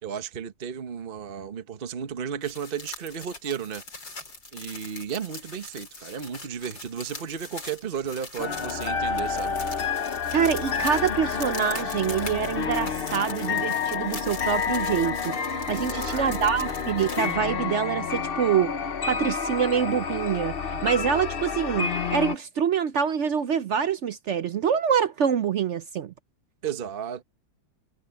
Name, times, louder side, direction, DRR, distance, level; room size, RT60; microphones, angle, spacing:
voice 1, 0.0-3.8 4.5-9.6 11.5-11.9 15.7-16.4 26.6-27.2, right 7 dB, 35° right, 1.1 m, -34 dB
sound 1, 2.4-17.3, left 3 dB, 75° left, 5.5 m, -42 dB
sound 2, 8.4-22.3, left 6 dB, 40° left, 0.9 m, -29 dB
voice 2, 10.3-18.7 19.1-26.1, right 7 dB, 70° right, 0.7 m, -26 dB
omnidirectional pair, 2.0 m